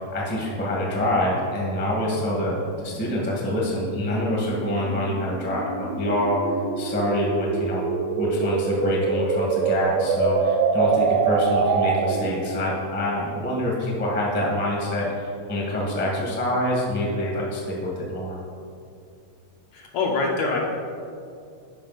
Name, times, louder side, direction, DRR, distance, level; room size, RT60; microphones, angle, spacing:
voice 1, 0.0-6.4 6.8-18.4, left 1 dB, 5° left, -4 dB, 0.8 m, -26 dB
sound 1, 1.3-12.4, right 5 dB, 85° right, 2.2 m, -26 dB
voice 2, 19.7-20.6, left 3 dB, 70° left, -1 dB, 2.0 m, -24 dB
12.0 x 5.4 x 4.1 m, 2.4 s
omnidirectional pair, 3.7 m